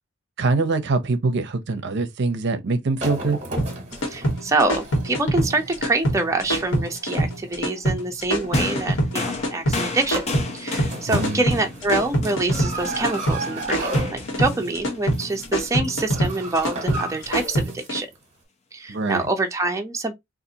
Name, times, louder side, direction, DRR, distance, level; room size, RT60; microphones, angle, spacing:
voice 1, 0.4-3.4 11.1-11.4 18.9-19.3, right 3 dB, 60° right, 0.6 m, -23 dB
sound 1, 3.0-7.8 8.4-8.6 9.8-9.9 10.1-10.4 10.8-14.6 15.0-15.4 15.6-17.9 18.1-18.2, right 2 dB, 35° right, 1.0 m, -34 dB
sound 2, 3.6-18.0, right 1 dB, 80° left, 1.3 m, -24 dB
voice 2, 4.1-10.3 10.5-18.1 18.7-20.1, right 2 dB, 15° right, 0.6 m, -25 dB
sound 3, 8.5-16.0 17.0-17.2, left 3 dB, 35° left, 0.6 m, -33 dB
3.9 x 2.4 x 2.7 m
head